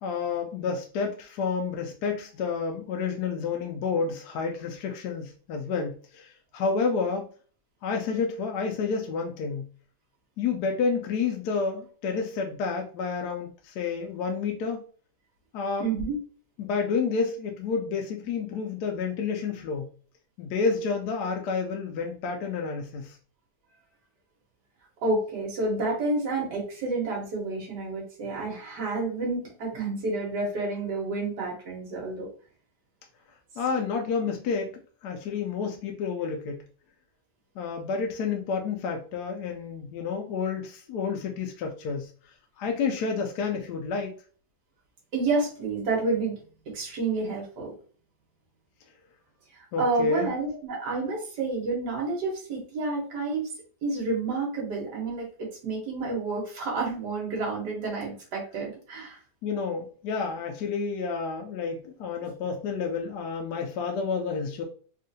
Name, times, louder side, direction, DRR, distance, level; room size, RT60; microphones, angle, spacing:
voice 1, 0.0-7.3 7.8-9.7 10.4-14.8 15.5-15.9 16.6-19.9 20.4-23.2 33.6-36.6 37.6-42.1 42.6-44.1 49.7-50.3 59.4-64.6, left 5 dB, 80° left, 2 dB, 1.1 m, -30 dB
voice 2, 15.8-16.2 25.0-32.3 45.1-46.4 46.7-47.7 49.5-53.5 53.8-59.2, right 3 dB, 90° right, -2 dB, 1.7 m, -29 dB
3.6 x 2.5 x 2.6 m, 0.41 s
omnidirectional pair, 1.7 m